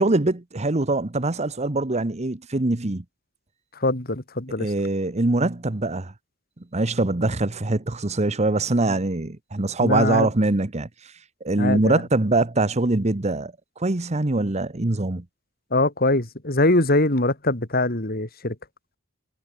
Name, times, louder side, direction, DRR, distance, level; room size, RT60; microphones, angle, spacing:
voice 1, 0.0-3.0 4.6-6.1 6.7-11.1 11.4-15.2, right 2 dB, 35° right, 1.1 m, -23 dB
voice 2, 3.8-4.7 9.8-10.3 11.6-12.0 15.7-18.6, left 2 dB, 50° left, 3.5 m, -22 dB
head